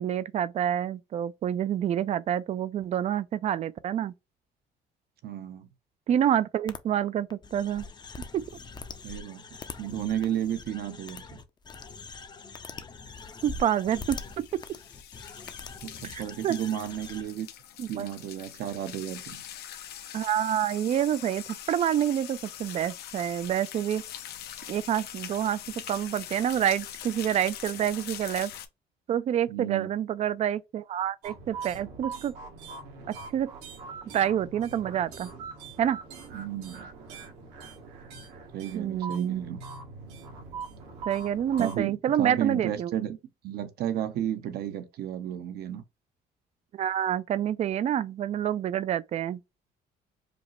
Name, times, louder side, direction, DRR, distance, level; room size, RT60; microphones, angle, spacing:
voice 1, 0.0-4.1 6.1-7.9 8.3-8.4 13.4-14.6 16.0-16.6 17.8-18.1 20.1-24.0 24.7-25.6 25.9-28.5 29.1-32.3 33.1-33.5 34.1-35.3 35.8-36.0 38.7-39.5 41.1-42.9 46.7-49.4, right 10 dB, 40° right, 0.4 m, -28 dB
voice 2, 5.2-5.7 9.0-9.4 9.8-11.4 15.8-17.5 17.9-19.4 29.5-29.9 36.3-36.9 38.5-39.6 41.6-43.2 43.4-45.8, right 10 dB, 70° right, 0.8 m, -33 dB
sound 1, 6.7-6.8 7.3-17.2, left 4 dB, 25° left, 0.5 m, -43 dB
sound 2, 13.0-28.7, left 11 dB, 70° left, 0.6 m, -43 dB
sound 3, 31.2-41.7, right 4 dB, 85° right, 1.6 m, -42 dB
5.1 x 2.0 x 3.0 m
cardioid pair, 110°, 17 cm